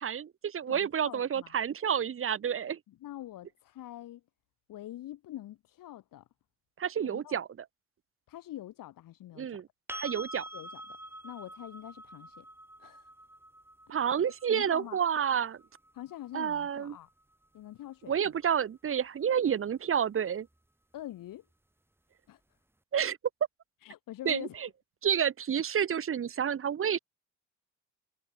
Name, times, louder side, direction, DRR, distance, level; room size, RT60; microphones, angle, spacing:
voice 1, 0.0-2.8 6.8-7.5 9.4-9.7 10.0-10.4 13.9-15.6 16.3-17.0 18.1-20.5 22.9-23.2 24.2-24.7 25.0-27.0, right 8 dB, 35° right, 1.3 m, -29 dB
voice 2, 0.7-1.6 2.9-4.2 4.7-6.3 7.0-7.4 8.3-9.6 10.5-11.0 11.2-12.5 12.8-13.1 14.5-15.0 15.9-17.1 17.5-18.3 20.9-21.5 22.3-22.4 23.8-24.6, left 13 dB, 55° left, 3.7 m, -45 dB
sound 1, 9.9-17.7 20.5-20.6, right 1 dB, 5° right, 2.9 m, -47 dB
figure-of-eight pair, 55°, 40 cm